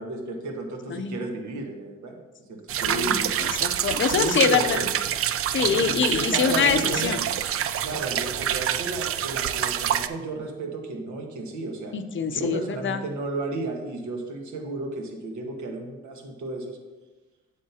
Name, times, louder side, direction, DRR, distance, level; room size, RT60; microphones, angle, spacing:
voice 1, 0.0-2.2 2.5-3.3 4.1-4.9 5.6-7.2 7.8-11.9 12.3-16.8, right 3 dB, 75° right, 2 dB, 1.5 m, -33 dB
sound 1, 2.7-10.1, right 10 dB, 50° right, 0.4 m, -26 dB
voice 2, 2.8-4.8 5.5-7.2 11.9-13.0, left 7 dB, 40° left, 10 dB, 0.6 m, -25 dB
8.5 x 7.4 x 2.8 m, 1.2 s
cardioid pair, 90°, 30 cm